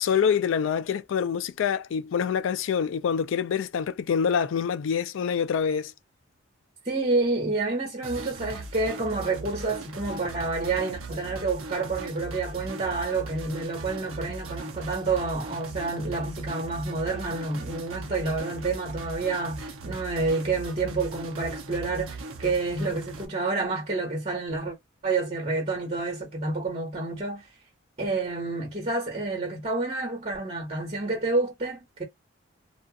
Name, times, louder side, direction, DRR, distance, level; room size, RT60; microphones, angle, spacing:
voice 1, 0.0-5.9, left 7 dB, 70° left, 0.3 m, -26 dB
voice 2, 6.8-24.7 25.0-27.4 28.0-32.0, right 3 dB, 30° right, 1.3 m, -29 dB
sound 1, 8.0-23.3, right 3 dB, 80° right, 0.7 m, -39 dB
2.5 x 2.4 x 2.4 m
head